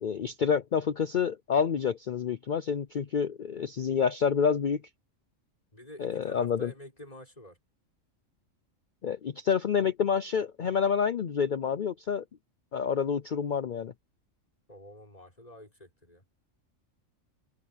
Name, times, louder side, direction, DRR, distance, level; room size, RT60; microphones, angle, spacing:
voice 1, 0.0-4.8 6.0-6.7 9.0-12.2 12.7-13.9, left 7 dB, 50° left, 0.6 m, -28 dB
voice 2, 5.7-7.6 14.7-16.2, equal, 30° left, 6.5 m, -48 dB
omnidirectional pair, 1.4 m